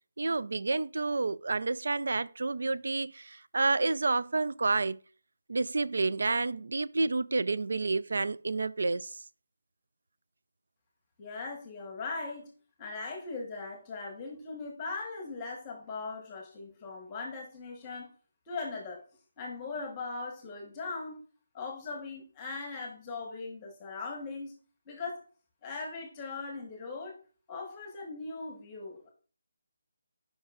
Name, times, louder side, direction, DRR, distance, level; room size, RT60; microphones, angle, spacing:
voice 1, 0.2-5.0 5.5-9.2, right 3 dB, 75° right, 0.4 m, -29 dB
voice 2, 11.2-12.5 12.8-18.1 18.5-19.0 19.4-21.2 21.5-24.5 24.9-25.2 25.6-27.2 27.5-29.1, left 3 dB, 15° left, 1.1 m, -39 dB
15.5 x 5.4 x 2.4 m
hypercardioid pair, 175°, 0 cm